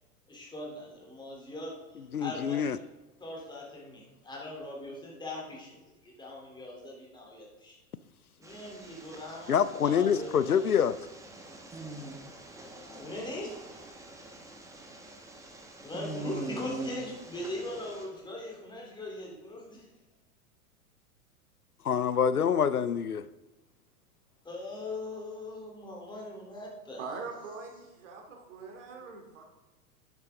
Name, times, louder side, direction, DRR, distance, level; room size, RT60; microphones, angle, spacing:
voice 1, 0.3-2.7 3.2-5.8 6.0-7.8 8.4-9.5 9.8-10.6 12.8-13.6 15.8-19.9 24.4-27.2, left 1 dB, 10° left, 3.3 m, -40 dB
voice 2, 2.1-2.8 9.5-11.0 21.8-23.3, left 7 dB, 85° left, 0.5 m, -26 dB
sound 1, 8.4-18.1, right 2 dB, 5° right, 1.4 m, -44 dB
voice 3, 27.0-29.4, right 4 dB, 55° right, 2.6 m, -42 dB
11.0 x 9.6 x 3.7 m
figure-of-eight pair, 95°, 44 cm